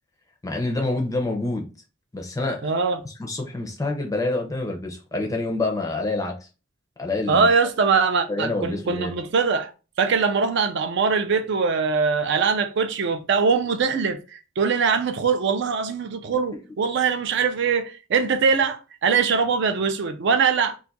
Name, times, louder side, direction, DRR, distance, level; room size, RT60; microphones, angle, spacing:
voice 1, 0.4-1.7 2.1-2.7 3.0-6.4 7.0-7.5 8.3-9.1, left 2 dB, 15° left, 0.5 m, -27 dB
voice 2, 2.6-3.0 7.3-9.7 10.0-20.8, right 5 dB, 55° right, 0.4 m, -22 dB
2.5 x 2.3 x 3.9 m
head